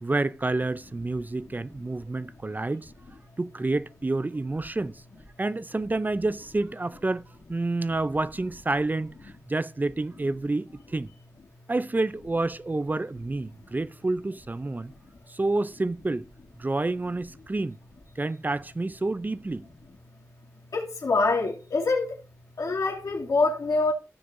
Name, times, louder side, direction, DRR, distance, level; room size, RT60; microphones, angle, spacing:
voice 1, 0.0-2.9 3.4-5.0 5.4-7.2 7.5-11.1 11.7-14.9 15.3-16.3 16.6-17.8 18.2-19.7, right 2 dB, 30° right, 0.5 m, -29 dB
voice 2, 20.7-22.2 22.6-23.9, left 3 dB, 80° left, 2.5 m, -25 dB
15.0 x 6.6 x 2.6 m
cardioid pair, 50°, 6 cm